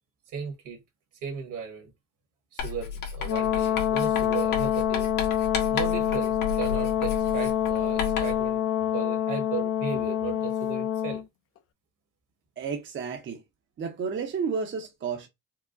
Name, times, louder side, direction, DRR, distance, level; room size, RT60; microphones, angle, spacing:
voice 1, 0.3-0.8 1.2-1.9 2.5-5.1 5.7-8.6 8.9-11.2, right 6 dB, 75° right, 1.5 m, -36 dB
Writing, 2.6-8.5, left 6 dB, 75° left, 1.2 m, -33 dB
Brass instrument, 3.2-11.2, left 10 dB, 45° left, 0.4 m, -26 dB
voice 2, 12.6-13.4 13.8-15.3, right 5 dB, 35° right, 0.6 m, -31 dB
4.6 x 2.1 x 2.5 m
cardioid pair, 140°, 32 cm